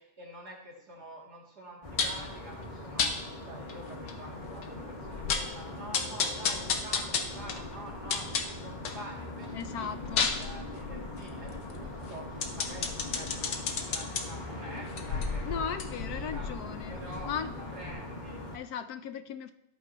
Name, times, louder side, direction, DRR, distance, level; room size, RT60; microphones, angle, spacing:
voice 1, 0.0-16.5 16.9-18.4, right 1 dB, 65° right, -3 dB, 3.2 m, -47 dB
sound 1, 1.8-18.6, left 2 dB, 25° left, 1.6 m, -41 dB
sound 2, 2.0-2.3 3.0-3.1 3.7-3.8 4.1-4.2 4.6-4.7 5.0-5.6 5.9-9.0 9.4-14.2 14.8-17.5 17.9-18.0, left 5 dB, 90° left, 1.7 m, -32 dB
voice 2, 9.5-10.3 15.4-17.0 17.3-17.5 18.5-19.5, left 7 dB, 70° left, 10 dB, 1.0 m, -37 dB
16.5 x 8.5 x 3.0 m, 0.84 s
omnidirectional pair, 1.8 m